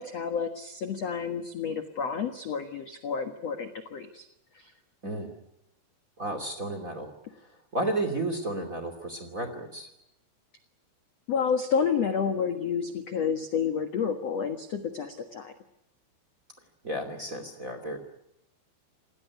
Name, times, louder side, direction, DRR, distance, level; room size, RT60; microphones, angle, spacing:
voice 1, 0.0-4.3 4.5-4.7 11.3-15.5, left 6 dB, 75° left, 7 dB, 1.5 m, -30 dB
voice 2, 6.2-7.1 7.7-9.9 16.8-18.0, right 1 dB, 25° right, 8 dB, 2.0 m, -32 dB
28.0 x 19.0 x 9.4 m, 0.83 s
omnidirectional pair, 5.5 m